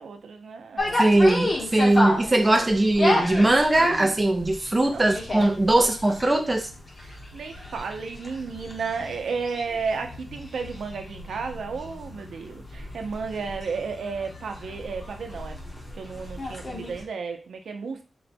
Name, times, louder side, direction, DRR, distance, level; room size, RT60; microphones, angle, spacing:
voice 1, 0.0-1.0 1.9-2.6 4.9-5.2 5.7-5.8 7.0-15.6 15.9-18.0, right 5 dB, 85° right, 5 dB, 0.6 m, -33 dB
sound 1, 0.8-17.0, left 1 dB, 30° left, 0.9 m, -32 dB
voice 2, 1.0-6.7, right 1 dB, 20° right, 3 dB, 0.4 m, -20 dB
3.8 x 2.2 x 4.1 m, 0.33 s
wide cardioid pair, 165°, 0 cm